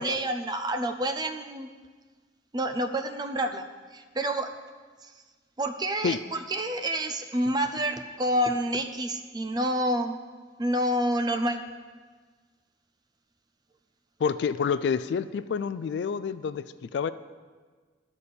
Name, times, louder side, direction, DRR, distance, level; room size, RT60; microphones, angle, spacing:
voice 1, 0.0-1.7 2.5-4.5 5.0-5.1 5.6-10.2 10.6-11.6, right 1 dB, 20° right, 7 dB, 0.4 m, -28 dB
voice 2, 14.2-17.1, left 6 dB, 70° left, 14 dB, 0.3 m, -28 dB
11.0 x 4.2 x 6.8 m, 1.5 s
head